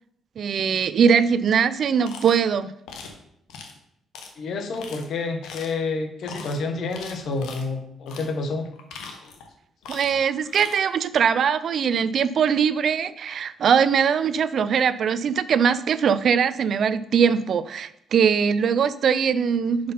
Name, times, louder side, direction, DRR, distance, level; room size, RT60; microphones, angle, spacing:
voice 1, 0.4-2.7 9.9-19.9, right 7 dB, 60° right, 15 dB, 0.4 m, -21 dB
sound 1, 2.0-2.4 2.9-3.2 3.5-3.7 4.1-4.3 4.7-5.0 5.4-5.8 6.2-6.5 6.9-7.6 8.1-8.3 8.7-9.5 9.8-10.2 10.4-10.8, left 5 dB, 90° left, 1.1 m, -40 dB
voice 2, 4.4-8.7, left 3 dB, 65° left, 5 dB, 1.2 m, -29 dB
5.5 x 5.1 x 5.5 m, 0.76 s
cardioid pair, 90°, 0 cm